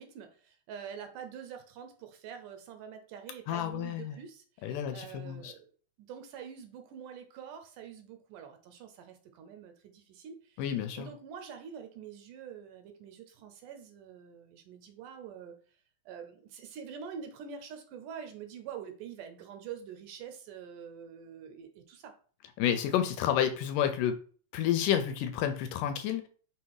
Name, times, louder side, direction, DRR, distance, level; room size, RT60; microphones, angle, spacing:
voice 1, 0.0-5.7 6.0-10.6 11.0-15.6 16.1-22.1, right 7 dB, 75° right, 7 dB, 2.2 m, -46 dB
voice 2, 3.5-4.2 4.6-5.5 10.6-11.1 22.6-24.2 24.5-26.3, left 10 dB, 80° left, 8 dB, 2.1 m, -30 dB
6.1 x 3.4 x 4.7 m, 0.42 s
omnidirectional pair, 4.0 m